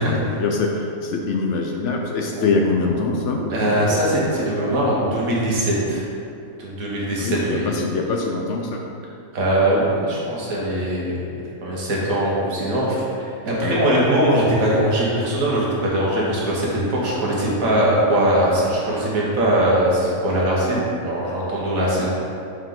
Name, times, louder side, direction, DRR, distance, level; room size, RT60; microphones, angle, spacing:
voice 1, 0.0-3.4 7.2-8.8 13.6-13.8, left 4 dB, 65° left, 1 dB, 0.8 m, -23 dB
sound 1, 2.7-6.1 6.4-6.5, left 1 dB, 45° left, 1.2 m, -31 dB
voice 2, 3.5-6.0 6.6-7.7 9.3-13.1 13.5-22.1, right 1 dB, 75° right, -5 dB, 1.7 m, -21 dB
6.5 x 4.4 x 3.8 m, 2.6 s
omnidirectional pair, 1.5 m